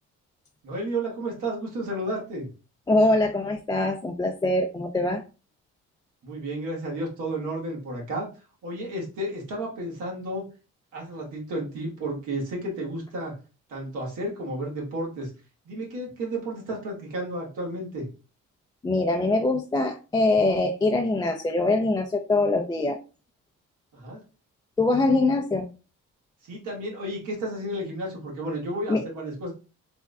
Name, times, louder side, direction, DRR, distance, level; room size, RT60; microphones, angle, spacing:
voice 1, 0.6-2.5 6.2-8.3 8.6-10.4 10.9-13.3 13.7-15.3 15.6-18.1 23.9-24.2 26.4-29.5, right 1 dB, 85° right, -2 dB, 1.5 m, -32 dB
voice 2, 2.9-5.2 18.8-23.0 24.8-25.7 28.9-29.0, left 2 dB, 15° left, 3 dB, 0.3 m, -23 dB
3.5 x 2.1 x 3.5 m, 0.33 s
cardioid pair, 90°, 30 cm